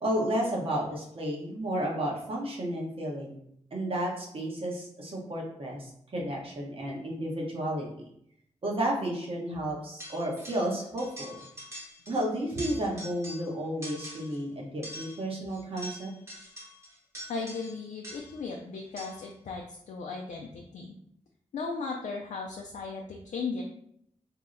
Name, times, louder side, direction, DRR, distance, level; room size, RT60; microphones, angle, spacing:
voice 1, 0.0-3.4 3.7-7.9 8.6-11.4 12.1-16.1, right 1 dB, 50° right, -2 dB, 1.0 m, -32 dB
sound 1, 10.0-10.7 11.0-12.2 12.5-13.5 13.8-14.4 14.8-18.5 19.0-19.3, equal, 25° right, 1.0 m, -45 dB
voice 2, 17.3-20.9 21.5-23.6, left 4 dB, 80° left, 1 dB, 0.4 m, -36 dB
2.7 x 2.0 x 3.7 m, 0.71 s
wide cardioid pair, 90°, 12 cm